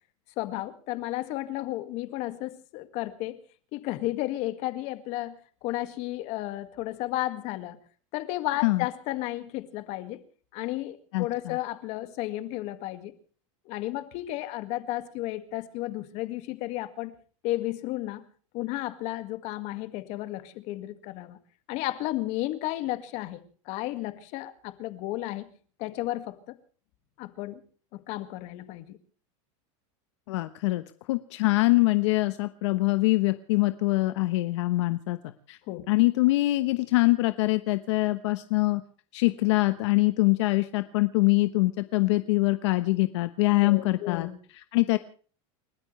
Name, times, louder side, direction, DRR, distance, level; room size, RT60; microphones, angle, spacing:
voice 1, 0.4-3.4 3.7-7.8 8.1-10.2 10.5-13.1 13.7-17.1 17.4-18.2 18.5-21.4 21.7-25.5 25.8-26.5 27.2-27.6 27.9-29.0 35.7-35.8 43.6-44.4, left 16 dB, 45° left, 2.0 m, -33 dB
voice 2, 11.1-11.6 30.3-35.6 35.9-38.8 39.1-44.3 44.6-45.0, left 21 dB, 70° left, 1.1 m, -24 dB
30.0 x 13.5 x 3.3 m
supercardioid pair, 160°, 16 cm